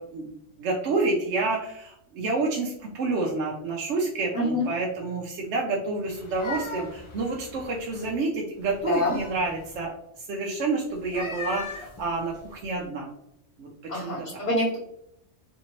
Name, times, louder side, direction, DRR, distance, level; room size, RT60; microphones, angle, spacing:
voice 1, 0.0-9.9 10.2-13.1 13.6-14.1, right 3 dB, 70° right, -2 dB, 0.9 m, -29 dB
voice 2, 4.3-4.7 8.9-9.1 13.9-14.8, left 1 dB, 70° left, -8 dB, 1.5 m, -26 dB
sound 1, 6.1-8.2 8.6-9.8 11.0-12.8, left 4 dB, 45° left, 0.4 m, -39 dB
3.4 x 2.8 x 2.8 m, 0.77 s
omnidirectional pair, 1.3 m